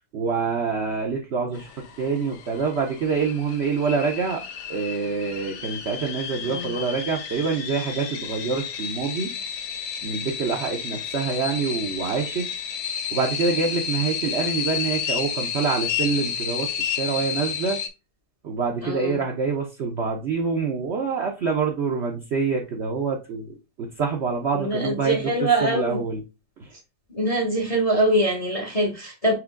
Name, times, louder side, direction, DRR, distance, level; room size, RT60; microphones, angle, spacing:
voice 1, 0.1-4.4 4.7-9.4 10.0-12.5 13.1-17.8 18.4-26.2 26.6-26.8, right 5 dB, 65° right, 0.6 m, -26 dB
sound 1, 1.5-17.9, left 7 dB, 70° left, 1.2 m, -31 dB
voice 2, 6.4-6.7 18.8-19.2 24.5-26.0 27.1-29.3, right 1 dB, 35° left, 0.6 m, -23 dB
4.8 x 2.9 x 3.6 m
omnidirectional pair, 2.0 m